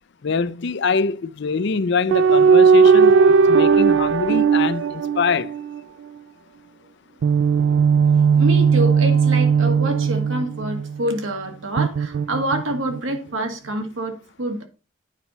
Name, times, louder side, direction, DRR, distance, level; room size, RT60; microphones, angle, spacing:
voice 1, 0.2-5.5, left 5 dB, 60° left, 0.5 m, -24 dB
sound 1, 2.1-5.8 7.2-11.0 11.8-13.0, right 6 dB, 60° right, 0.3 m, -16 dB
voice 2, 8.4-14.7, right 1 dB, 80° right, 1.8 m, -27 dB
9.0 x 5.4 x 4.1 m
head